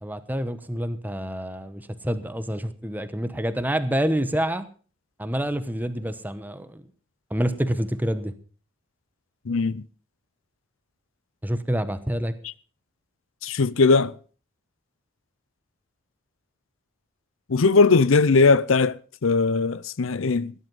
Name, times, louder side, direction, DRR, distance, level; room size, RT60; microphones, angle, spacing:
voice 1, 0.0-4.7 5.2-6.8 7.3-8.3 11.4-12.4, equal, 10° right, 1.0 m, -27 dB
voice 2, 9.5-9.8 13.4-14.1 17.5-20.5, left 4 dB, 75° left, 0.6 m, -19 dB
17.5 x 11.0 x 5.5 m
head